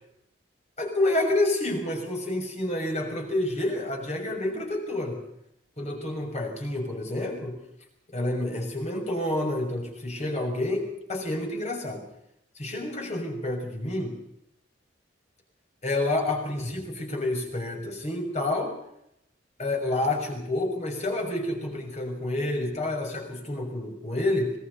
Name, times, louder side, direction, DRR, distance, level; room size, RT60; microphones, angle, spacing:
voice 1, 0.8-5.2 5.8-7.6 8.1-12.1 12.6-14.2 15.8-18.8 19.6-24.5, left 1 dB, 40° left, 3 dB, 6.2 m, -29 dB
26.0 x 20.0 x 5.4 m, 0.77 s
head